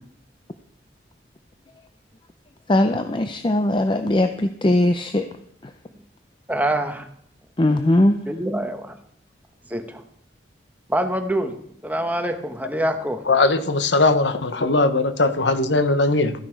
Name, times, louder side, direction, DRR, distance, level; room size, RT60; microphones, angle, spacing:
voice 1, 2.7-5.2 7.6-8.1, left 1 dB, 25° left, 8 dB, 0.5 m, -19 dB
voice 2, 6.5-7.1 8.3-9.0 9.7-10.0 10.9-11.6 11.8-13.2, right 1 dB, 10° right, 6 dB, 1.1 m, -25 dB
voice 3, 13.3-16.3, left 3 dB, 80° left, 10 dB, 1.0 m, -19 dB
14.5 x 10.0 x 4.6 m, 0.69 s
head